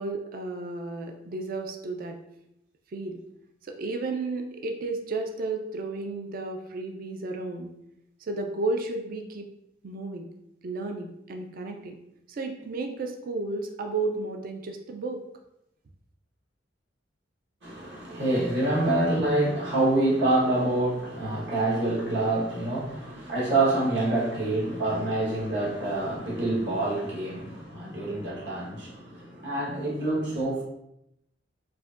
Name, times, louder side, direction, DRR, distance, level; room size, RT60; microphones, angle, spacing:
voice 1, 0.0-2.2 2.9-3.2 3.6-7.7 8.2-9.5 9.8-10.3 10.6-12.0 12.3-15.2, right 3 dB, 50° right, 4 dB, 0.4 m, -33 dB
voice 2, 17.6-30.6, right 2 dB, 65° right, -5 dB, 1.3 m, -26 dB
4.7 x 2.5 x 2.4 m, 0.82 s
head